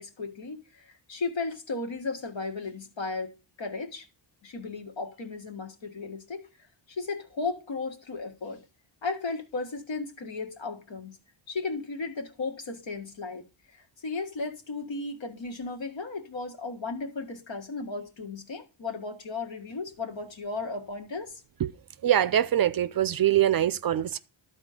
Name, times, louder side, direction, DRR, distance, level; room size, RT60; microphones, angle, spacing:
voice 1, 0.0-3.3 3.6-4.1 4.4-6.5 6.9-8.6 9.0-11.2 11.5-13.4 13.7-21.4 24.0-24.1, left 3 dB, 65° left, 1.8 m, -35 dB
voice 2, 22.0-24.2, right 11 dB, 45° right, 0.5 m, -23 dB
12.0 x 4.3 x 5.0 m
cardioid pair, 65°, 50 cm